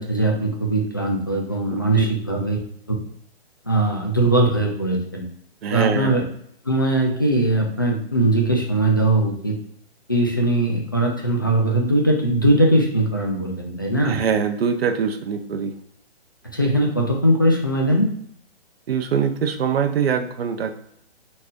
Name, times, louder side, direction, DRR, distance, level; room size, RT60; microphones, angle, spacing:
voice 1, 0.0-2.6 3.7-5.2 5.7-6.2 6.6-9.6 10.1-14.2 16.5-18.1, right 1 dB, 20° left, 0 dB, 0.3 m, -20 dB
voice 2, 1.7-2.0 5.6-6.1 14.0-15.7 18.9-20.7, right 7 dB, 65° right, 7 dB, 0.7 m, -23 dB
4.1 x 3.4 x 3.6 m, 0.69 s
hypercardioid pair, 170°, 32 cm